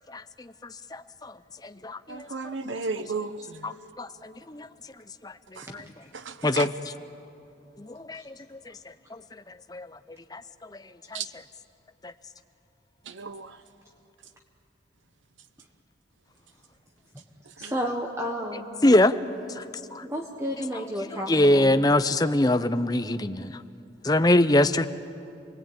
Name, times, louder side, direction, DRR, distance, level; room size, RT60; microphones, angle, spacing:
voice 1, 0.1-2.7 3.6-4.7 5.2-5.9 6.4-6.9 7.8-10.0 10.3-10.8 11.1-11.3 12.0-12.1 18.8-19.2 19.5-19.7 19.9-20.0 20.7-23.6 24.0-24.8, left 1 dB, 20° left, 0.6 m, -25 dB
voice 2, 2.1-3.7 5.6-5.7 6.1-6.7 11.1-11.2 13.1-13.5 17.6-17.7, right 4 dB, 85° right, 0.9 m, -34 dB
voice 3, 17.6-18.7 20.0-21.7, equal, 15° right, 1.4 m, -32 dB
28.5 x 20.5 x 8.9 m
head